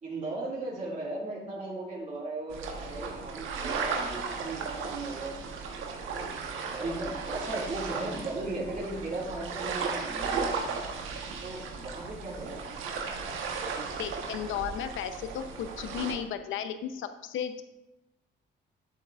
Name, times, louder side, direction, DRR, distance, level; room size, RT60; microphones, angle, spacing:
voice 1, 0.0-5.4 6.1-10.6 11.4-12.6, right 2 dB, 35° right, -7 dB, 2.4 m, -37 dB
sound 1, 2.5-16.1, right 5 dB, 85° right, 1.2 m, -35 dB
voice 2, 14.0-17.6, left 8 dB, 80° left, 9 dB, 0.7 m, -34 dB
11.5 x 7.6 x 2.4 m, 0.97 s
cardioid pair, 90°, 20 cm